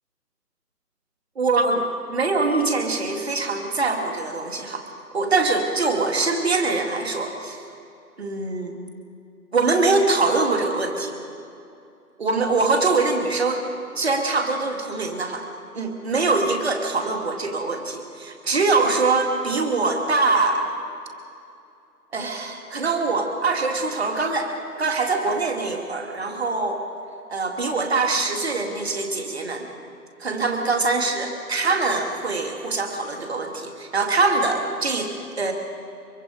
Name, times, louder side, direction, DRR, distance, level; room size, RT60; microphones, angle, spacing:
voice 1, 1.4-1.8 2.1-4.8 5.1-7.6 8.2-8.7 9.5-11.1 12.2-13.6 14.0-15.5 15.7-20.7 22.1-24.5 24.8-26.8 27.3-29.7 30.2-35.5, right 3 dB, 40° right, 3 dB, 2.3 m, -23 dB
23.5 x 22.5 x 5.1 m, 2.6 s
figure-of-eight pair, 165°, 48 cm